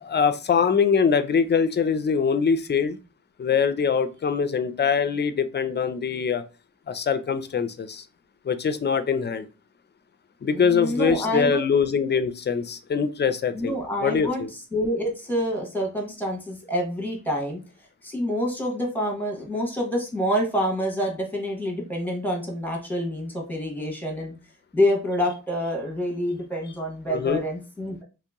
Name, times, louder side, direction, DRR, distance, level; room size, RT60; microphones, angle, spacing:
voice 1, 0.0-3.0 3.4-6.4 6.9-8.0 8.5-9.5 10.4-14.5 27.1-27.4, left 6 dB, 35° left, 11 dB, 0.4 m, -23 dB
voice 2, 10.5-11.6 13.5-17.6 18.0-24.3 24.7-28.0, equal, 5° left, 1 dB, 1.1 m, -27 dB
3.0 x 2.9 x 3.5 m, 0.32 s
wide cardioid pair, 105°, 33 cm